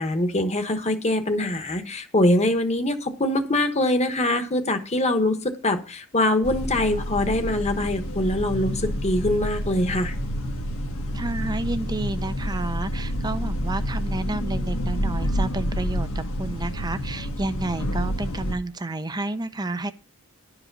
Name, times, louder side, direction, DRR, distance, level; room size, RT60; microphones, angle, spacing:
voice 1, 0.0-10.1, left 1 dB, 30° left, 7 dB, 1.2 m, -23 dB
sound 1, 6.4-18.5, equal, 70° left, 1.5 m, -28 dB
voice 2, 11.1-19.9, right 2 dB, 20° right, 11 dB, 0.6 m, -30 dB
11.0 x 4.9 x 6.7 m, 0.37 s
head